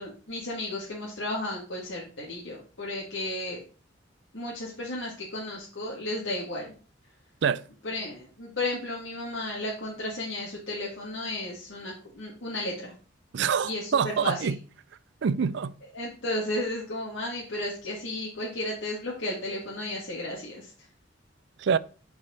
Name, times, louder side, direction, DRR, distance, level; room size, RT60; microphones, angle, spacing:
voice 1, 0.0-3.6 4.3-6.6 7.8-12.9 13.6-14.5 15.9-20.7, left 1 dB, 75° left, 1.9 m, -33 dB
voice 2, 13.3-14.6 15.2-15.7 21.6-21.8, right 6 dB, 65° right, 0.4 m, -25 dB
7.8 x 4.8 x 4.3 m
head